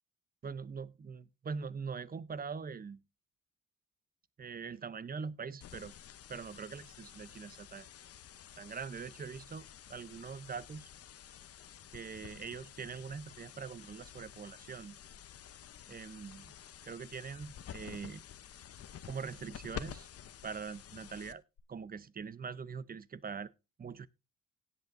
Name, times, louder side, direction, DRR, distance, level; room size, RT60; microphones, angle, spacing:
voice 1, 0.4-3.0 4.4-5.9 6.3-7.9 8.6-10.9 11.9-15.0 15.9-16.5 16.8-18.2 19.1-20.1 20.4-21.4 21.7-23.5 23.8-24.1, right 5 dB, 30° right, 0.6 m, -43 dB
sound 1, 5.6-21.6, left 9 dB, 50° left, 0.8 m, -50 dB
17.5 x 8.3 x 2.6 m
cardioid pair, 90°, 31 cm